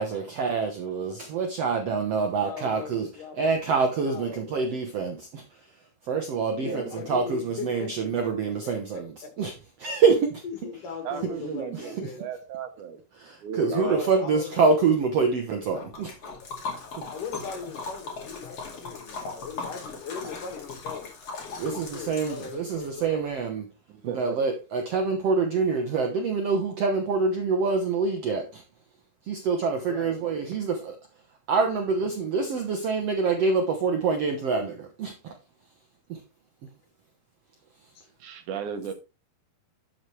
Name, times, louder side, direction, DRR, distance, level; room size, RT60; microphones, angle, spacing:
voice 1, 0.0-3.1 3.4-5.4 6.1-9.5 9.8-10.4 11.7-12.1 13.2-16.1 17.0-17.1 21.6-23.7 24.0-28.5 29.3-31.0 31.5-35.3 36.1-36.2, right 4 dB, 90° right, 1.3 m, -26 dB
voice 2, 2.1-3.6 4.0-4.8 6.6-7.9 8.4-9.3 10.4-12.3 13.6-14.8 17.1-21.1 21.6-23.3 29.9-30.2, left 6 dB, 60° left, 3.6 m, -39 dB
voice 3, 6.6-6.9 11.0-13.0 13.4-14.0 23.9-24.4 38.2-38.9, right 7 dB, 70° right, 2.1 m, -35 dB
Liquid, 15.7-22.9, left 4 dB, 45° left, 2.9 m, -39 dB
12.0 x 6.7 x 3.2 m
omnidirectional pair, 4.4 m